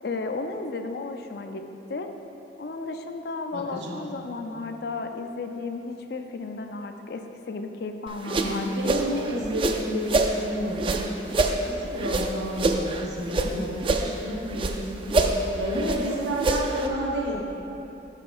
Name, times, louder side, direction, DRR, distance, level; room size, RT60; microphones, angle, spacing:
voice 1, 0.0-1.6 1.9-2.1 2.6-9.0, left 3 dB, 55° left, 6 dB, 0.4 m, -34 dB
voice 2, 3.5-4.1 8.2-11.1 11.5-17.5, equal, 75° right, -2 dB, 1.0 m, -30 dB
sound 1, 8.1-10.4 10.8-13.5 13.8-14.8 15.1-16.9, right 3 dB, 30° right, 0.3 m, -26 dB
6.7 x 4.9 x 5.4 m, 3.0 s
head